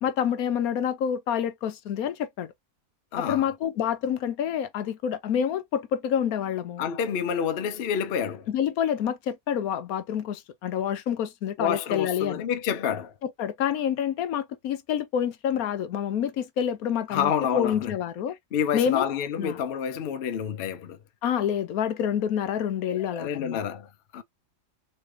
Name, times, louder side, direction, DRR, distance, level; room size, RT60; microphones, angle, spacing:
voice 1, 0.0-2.5 3.2-6.9 8.5-12.4 13.2-18.4 18.7-19.0 19.4-19.6 21.2-23.6, left 9 dB, 75° left, 1.1 m, -27 dB
voice 2, 3.1-3.5 6.8-8.5 11.6-13.1 17.1-17.9 18.5-21.0 22.9-24.2, left 8 dB, 55° left, 0.7 m, -28 dB
4.0 x 3.2 x 2.4 m
omnidirectional pair, 1.6 m